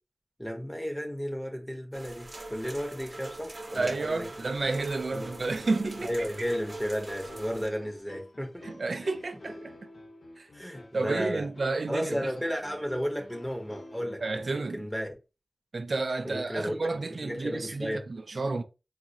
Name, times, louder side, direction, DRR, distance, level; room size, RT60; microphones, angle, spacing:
voice 1, 0.4-4.3 5.1-5.3 6.0-8.6 10.5-11.5 11.9-14.2 14.5-15.2 16.2-18.0, equal, 5° left, 0.8 m, -33 dB
sound 1, 1.9-7.7, right 2 dB, 45° right, 0.9 m, -43 dB
voice 2, 3.7-6.3 8.6-9.7 10.4-10.5 10.9-12.2 14.2-14.8 15.7-18.6, right 3 dB, 75° right, 0.4 m, -31 dB
sound 2, 4.4-14.8, left 2 dB, 85° left, 0.6 m, -50 dB
4.0 x 2.4 x 2.7 m
wide cardioid pair, 60°, 0 cm